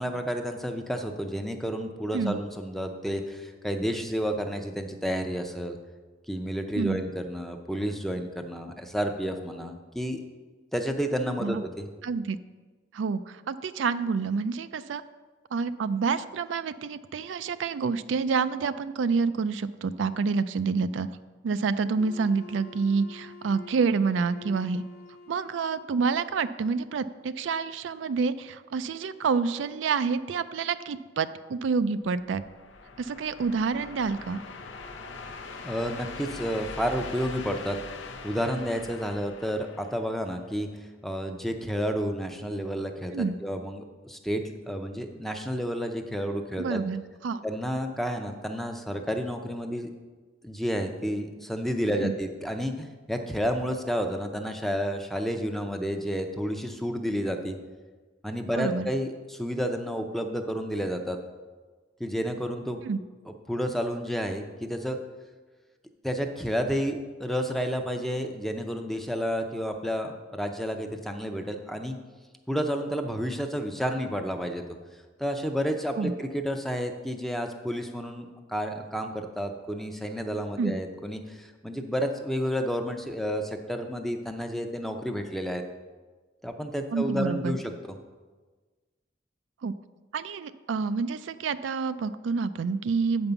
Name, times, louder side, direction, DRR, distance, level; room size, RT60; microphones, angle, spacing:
voice 1, 0.0-5.8 6.3-10.2 10.7-11.9 35.6-37.8 38.2-40.7 41.0-46.8 47.4-49.9 50.4-57.6 58.2-61.2 62.0-62.8 63.5-65.0 66.0-72.0 72.5-74.6 75.2-85.6 86.4-88.0, equal, ahead, 5 dB, 0.6 m, -31 dB
voice 2, 12.0-12.4 12.9-15.0 15.5-21.1 21.4-24.8 25.3-32.4 33.0-34.4 43.1-43.3 46.6-47.4 51.9-52.1 58.6-58.9 62.8-63.0 76.0-76.1 80.6-80.8 86.9-87.6 89.6-89.7 90.1-93.3, right 5 dB, 80° right, 12 dB, 0.4 m, -28 dB
Wind instrument woodwind instrument, 22.0-26.1, left 3 dB, 55° left, 1.0 m, -48 dB
sound 1, 32.1-40.5, left 4 dB, 85° left, 0.7 m, -42 dB
8.2 x 5.3 x 6.9 m, 1.3 s
head